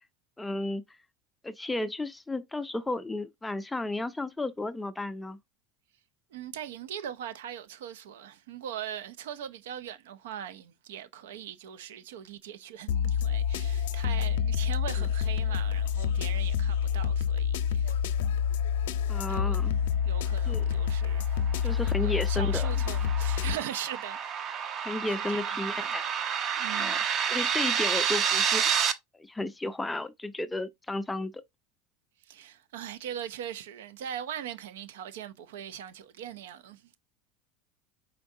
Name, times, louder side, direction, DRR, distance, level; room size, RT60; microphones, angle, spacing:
voice 1, 0.4-0.8 1.4-5.4 19.1-19.7 20.5-20.7 21.6-22.7 24.8-26.0 26.7-27.0 27.3-28.9 29.2-31.4, left 2 dB, 10° left, 0.4 m, -33 dB
voice 2, 6.3-17.9 19.3-19.7 20.0-24.4 24.8-26.0 26.6-27.0 32.2-37.0, right 10 dB, 85° right, 0.5 m, -41 dB
sound 1, 12.9-23.6, left 8 dB, 85° left, 0.5 m, -28 dB
sound 2, 21.2-28.9, right 7 dB, 45° right, 0.6 m, -30 dB
4.5 x 3.7 x 2.6 m
supercardioid pair, 105°, 0 cm